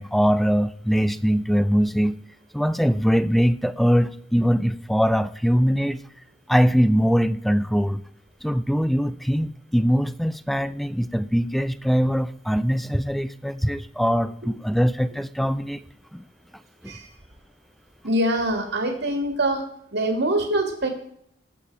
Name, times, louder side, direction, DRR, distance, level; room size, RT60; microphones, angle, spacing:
voice 1, 0.0-2.2 2.5-6.0 6.5-8.0 8.4-15.8 16.1-16.2 16.8-17.0, equal, ahead, 14 dB, 0.4 m, -22 dB
voice 2, 18.0-19.6 19.9-20.9, right 1 dB, 65° right, 3 dB, 2.0 m, -24 dB
19.0 x 7.5 x 4.6 m, 0.70 s
head